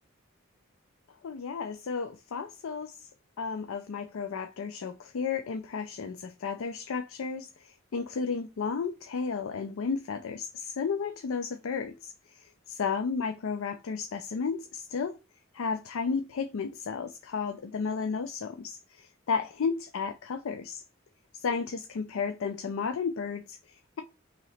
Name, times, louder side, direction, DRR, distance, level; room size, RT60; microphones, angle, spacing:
voice 1, 1.2-3.1 3.4-12.1 12.7-15.2 15.5-20.8 21.3-24.0, left 5 dB, 80° left, 0.4 m, -33 dB
3.0 x 2.8 x 4.1 m
head